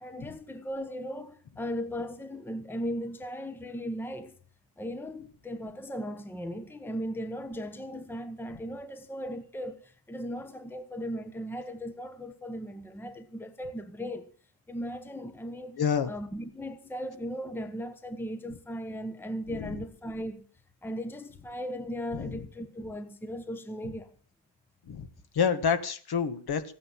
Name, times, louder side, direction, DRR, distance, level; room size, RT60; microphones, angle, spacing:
voice 1, 0.0-4.4 4.8-14.3 14.7-15.8 16.1-20.5 20.8-24.1, equal, 5° left, 1.1 m, -37 dB
voice 2, 15.8-16.1 19.6-19.8 22.1-22.3 24.9-25.1 25.4-26.6, left 7 dB, 50° left, 1.8 m, -27 dB
15.0 x 9.4 x 7.5 m
cardioid pair, 115°, 50 cm